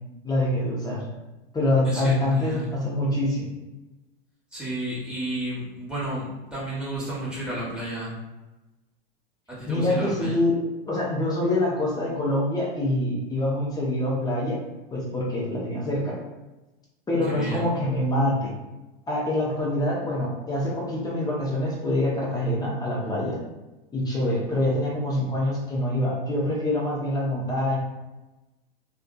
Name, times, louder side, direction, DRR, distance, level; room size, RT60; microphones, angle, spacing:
voice 1, 0.2-1.0 1.5-3.5 9.7-10.6 10.9-14.6 14.9-16.2 17.1-18.5 19.1-23.4 23.9-27.8, left 1 dB, 15° left, -4 dB, 0.7 m, -25 dB
voice 2, 1.8-2.7 4.5-6.3 6.5-8.1 9.6-10.4 17.3-17.7, right 1 dB, 5° right, -8 dB, 1.2 m, -32 dB
2.6 x 2.4 x 2.3 m, 1.1 s
hypercardioid pair, 110°, 29 cm